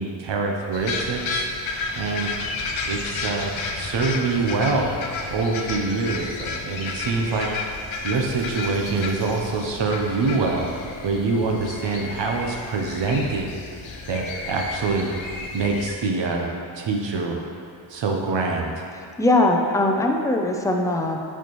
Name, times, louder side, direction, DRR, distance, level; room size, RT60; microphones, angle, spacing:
voice 1, 0.0-1.5 2.0-2.3 2.8-4.9 5.3-7.5 8.0-10.7 11.0-13.5 14.1-15.1 15.5-17.5 17.9-18.8, right 3 dB, 65° right, 1 dB, 0.8 m, -25 dB
sound 1, 0.7-16.0, left 3 dB, 75° left, 0.7 m, -32 dB
voice 2, 18.9-21.2, left 2 dB, 5° left, 1 dB, 0.4 m, -21 dB
7.9 x 4.5 x 3.1 m, 2.4 s
wide cardioid pair, 110°, 47 cm